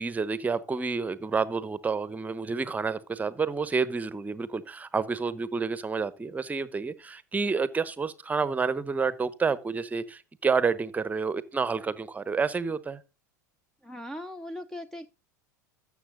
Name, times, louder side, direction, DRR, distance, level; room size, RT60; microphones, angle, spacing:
voice 1, 0.0-13.0, right 5 dB, 15° right, 0.9 m, -29 dB
voice 2, 13.8-15.1, left 1 dB, 5° left, 0.6 m, -39 dB
13.0 x 7.4 x 3.8 m
figure-of-eight pair, 80°, 10 cm